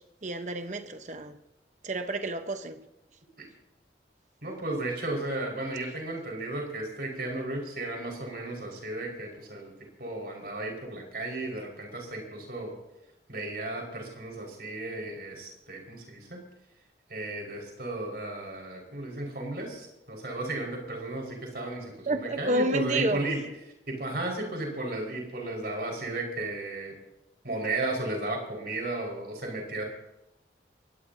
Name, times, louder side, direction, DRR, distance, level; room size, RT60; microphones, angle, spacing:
voice 1, 0.2-1.4 1.8-2.8 22.1-23.2, right 1 dB, 40° right, 1.1 m, -29 dB
voice 2, 4.4-9.7 10.0-12.8 13.3-16.4 17.1-23.4 23.9-27.0 27.4-29.8, right 2 dB, 60° right, 5.4 m, -34 dB
23.0 x 17.5 x 2.9 m
head